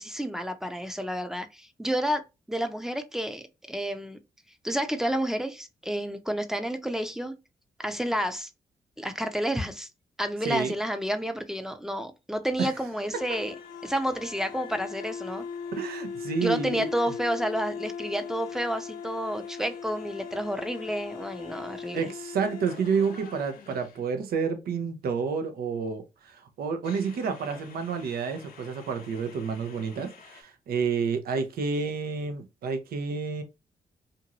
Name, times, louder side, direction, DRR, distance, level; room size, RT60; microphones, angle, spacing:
voice 1, 0.0-2.2 2.5-4.2 4.6-7.4 7.8-8.5 9.0-9.9 10.2-13.5 13.8-15.4 16.4-22.1, equal, 5° right, 0.6 m, -30 dB
voice 2, 10.4-10.7 12.6-12.7 15.7-16.9 21.9-33.4, right 5 dB, 75° right, 0.6 m, -30 dB
sound 1, 13.1-24.0 26.8-30.4, left 6 dB, 70° left, 0.7 m, -40 dB
2.6 x 2.5 x 2.9 m
supercardioid pair, 55°, 16 cm